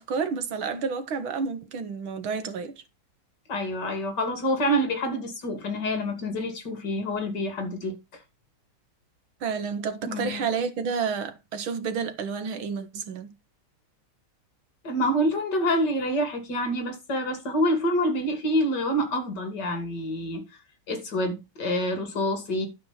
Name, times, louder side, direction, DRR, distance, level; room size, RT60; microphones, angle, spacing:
voice 1, 0.0-2.7 9.4-13.4, right 5 dB, 75° right, 2.2 m, -30 dB
voice 2, 3.5-8.0 10.1-10.5 14.8-20.4 20.9-22.7, equal, 55° left, 3.2 m, -27 dB
12.0 x 5.3 x 5.8 m
omnidirectional pair, 2.3 m